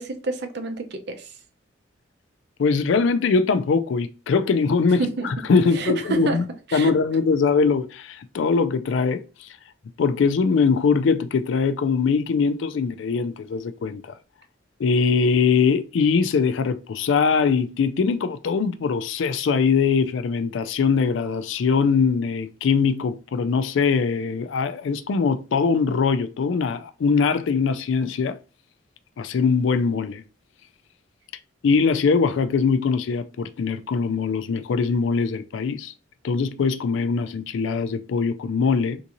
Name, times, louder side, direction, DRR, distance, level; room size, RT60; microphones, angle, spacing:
voice 1, 0.0-1.3 5.0-5.3 5.6-6.4 6.7-6.9, right 3 dB, 60° right, 0.6 m, -28 dB
voice 2, 2.6-6.4 6.7-9.5 10.0-14.0 14.8-28.4 29.2-30.2 31.6-35.9 36.2-39.0, left 5 dB, 70° left, 0.4 m, -22 dB
3.6 x 2.6 x 2.8 m
head